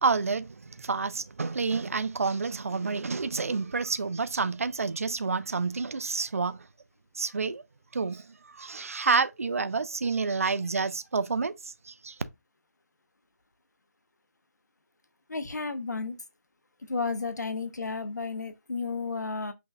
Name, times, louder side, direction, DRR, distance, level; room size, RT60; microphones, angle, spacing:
voice 1, 0.0-6.6 7.1-7.6 7.9-8.2 8.5-11.5 11.9-12.2, right 4 dB, 55° right, 0.4 m, -29 dB
voice 2, 15.3-16.2 16.9-19.5, left 4 dB, 90° left, 0.8 m, -32 dB
5.8 x 2.6 x 2.2 m
figure-of-eight pair, 175°, 9 cm